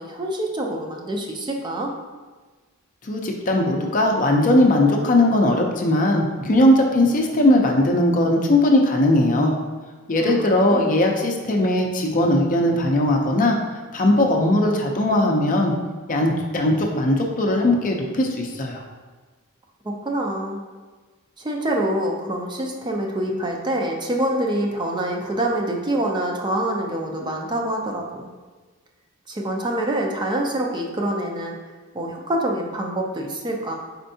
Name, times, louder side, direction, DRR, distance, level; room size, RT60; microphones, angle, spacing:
voice 1, 0.0-1.9 10.2-10.9 19.8-20.6 21.4-28.3 29.3-31.6 31.9-33.8, right 1 dB, 20° right, 0 dB, 0.4 m, -26 dB
voice 2, 3.0-9.5 10.1-13.6 13.9-15.7 16.1-18.8, left 1 dB, 40° left, 1 dB, 0.5 m, -19 dB
4.5 x 4.3 x 2.7 m, 1.4 s
head